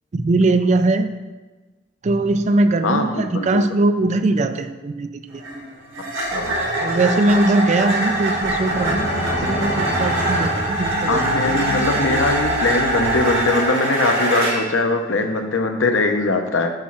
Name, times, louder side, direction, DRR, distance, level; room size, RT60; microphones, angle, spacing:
voice 1, 0.1-1.1 2.0-5.4 6.8-11.3, right 2 dB, 35° right, 9 dB, 0.4 m, -20 dB
voice 2, 2.8-3.6 6.3-6.6 11.1-16.7, left 3 dB, 85° left, 5 dB, 0.8 m, -21 dB
sound 1, 5.3-14.8, right 2 dB, 90° right, 1.9 m, -23 dB
sound 2, 6.2-7.7 8.1-8.2 8.4-10.0 10.6-13.7, left 3 dB, 60° left, 0.5 m, -33 dB
sound 3, 7.2-11.6, equal, 35° left, 1.2 m, -29 dB
8.7 x 3.1 x 5.9 m, 1.3 s
head